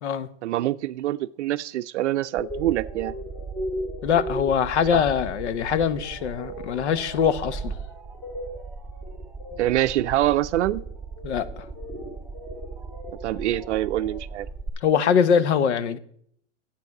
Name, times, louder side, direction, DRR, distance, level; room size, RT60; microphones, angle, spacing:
voice 1, 0.4-3.1 4.9-5.0 9.6-10.8 13.2-14.5, right 14 dB, 75° right, 0.5 m, -25 dB
sound 1, 2.4-14.7, right 2 dB, ahead, 2.2 m, -36 dB
voice 2, 4.0-7.7 11.2-11.6 14.8-16.0, left 7 dB, 70° left, 1.1 m, -23 dB
10.5 x 8.1 x 5.9 m
hypercardioid pair, 130°, 35 cm